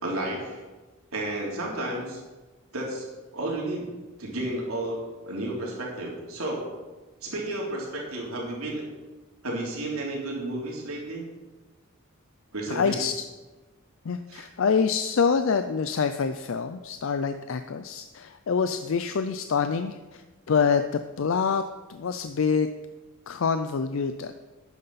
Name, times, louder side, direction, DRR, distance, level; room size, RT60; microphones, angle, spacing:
voice 1, 0.0-0.6 1.1-2.2 2.7-3.1 3.3-3.9 4.2-5.0 5.2-6.7 7.2-8.8 9.4-11.3 12.5-13.0 14.3-14.5, right 1 dB, 85° right, -3 dB, 3.3 m, -32 dB
voice 2, 12.7-13.2 14.1-20.2 20.5-21.6 21.9-22.7 23.3-24.4, left 5 dB, 65° left, 10 dB, 0.4 m, -26 dB
12.0 x 9.3 x 4.2 m, 1.2 s
head